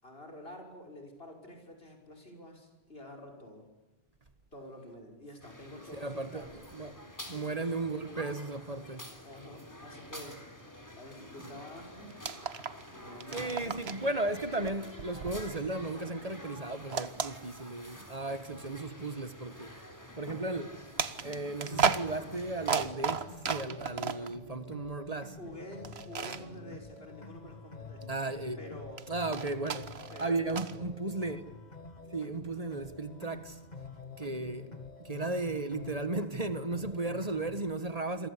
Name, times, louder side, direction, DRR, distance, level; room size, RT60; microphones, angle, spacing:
voice 1, 0.0-3.7 4.5-6.5 7.3-8.3 9.2-10.4 10.9-12.2 12.9-14.1 25.4-28.0 28.6-29.0 30.1-30.9, equal, 65° left, 6.0 m, -48 dB
sound 1, 5.4-22.8, equal, 15° left, 3.7 m, -49 dB
voice 2, 5.9-9.1 13.3-19.7 20.1-20.9 21.2-25.4 28.0-28.6 29.1-31.4 32.1-33.6 34.2-34.7 35.0-38.3, right 2 dB, 35° right, 1.5 m, -35 dB
sound 2, 12.1-12.9 13.1-14.1 14.6-16.1 16.9-18.0 18.6-18.8 21.0-24.3 25.8-26.4 29.0-30.8, right 6 dB, 75° right, 1.4 m, -34 dB
sound 3, 21.7-37.7, left 3 dB, 40° left, 2.7 m, -48 dB
28.5 x 23.0 x 8.5 m
omnidirectional pair, 1.1 m